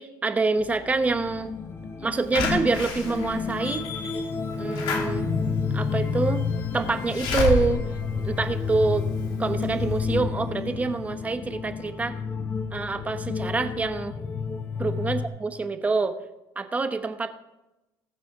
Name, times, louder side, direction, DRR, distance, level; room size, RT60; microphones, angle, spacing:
voice 1, 0.0-1.5 2.0-3.8 4.6-5.3 5.7-6.4 6.7-7.8 8.2-9.0 9.4-12.1 12.7-14.1 14.8-16.2 16.6-17.3, right 3 dB, 15° right, 8 dB, 1.0 m, -26 dB
sound 1, 0.6-15.3, left 5 dB, 25° left, 1.0 m, -30 dB
Slam / Alarm, 2.3-9.1 9.6-9.7 10.0-10.1, left 3 dB, 65° left, 2.6 m, -31 dB
20.0 x 6.8 x 3.6 m, 0.97 s
cardioid pair, 130°, 9 cm